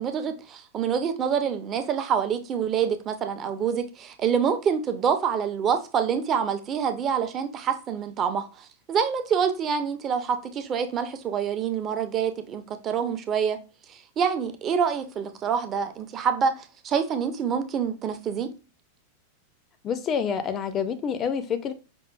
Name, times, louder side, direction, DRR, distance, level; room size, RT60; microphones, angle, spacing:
voice 1, 0.0-13.6 13.9-18.5, right 7 dB, 30° right, 0.5 m, -26 dB
voice 2, 19.8-21.7, left 7 dB, 30° left, 0.4 m, -27 dB
5.2 x 2.4 x 2.2 m
figure-of-eight pair, 90°, 0 cm